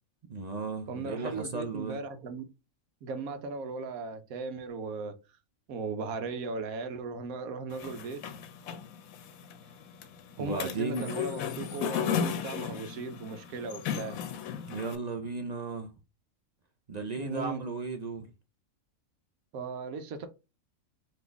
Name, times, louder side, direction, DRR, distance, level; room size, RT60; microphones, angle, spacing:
voice 1, 0.3-2.0 10.4-11.1 14.7-15.9 16.9-18.3, right 3 dB, 45° right, 0.5 m, -35 dB
voice 2, 0.9-2.4 3.0-5.1 5.7-8.2 10.4-14.2 17.2-17.6 19.5-20.3, right 4 dB, 85° right, 1.2 m, -37 dB
sound 1, 7.7-15.0, left 8 dB, 90° left, 1.1 m, -35 dB
4.1 x 3.0 x 3.4 m
omnidirectional pair, 1.4 m